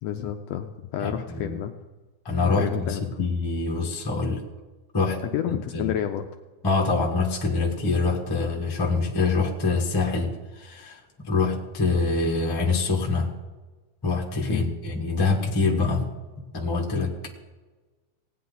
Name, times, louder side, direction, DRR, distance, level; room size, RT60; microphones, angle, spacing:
voice 1, 0.0-1.7 2.4-3.0 5.2-6.3 14.5-14.7, left 10 dB, 80° left, 6 dB, 1.5 m, -30 dB
voice 2, 1.0-1.6 2.2-4.4 4.9-5.2 5.7-5.9 6.6-13.3 14.0-16.0 16.5-17.1, left 3 dB, 25° left, -1 dB, 0.5 m, -25 dB
18.0 x 9.3 x 4.0 m, 1.2 s
omnidirectional pair, 3.4 m